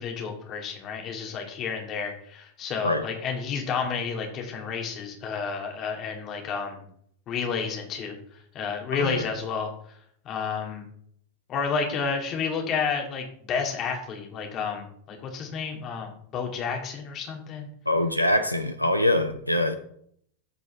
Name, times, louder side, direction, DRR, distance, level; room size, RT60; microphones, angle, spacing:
voice 1, 0.0-6.8 7.3-8.2 8.5-9.7 10.2-10.9 11.5-17.7, left 5 dB, 35° left, 2 dB, 2.4 m, -31 dB
voice 2, 8.9-9.2 17.9-19.8, left 1 dB, 90° left, 7 dB, 0.6 m, -24 dB
14.5 x 5.3 x 3.4 m, 0.64 s
figure-of-eight pair, 90°, 0 cm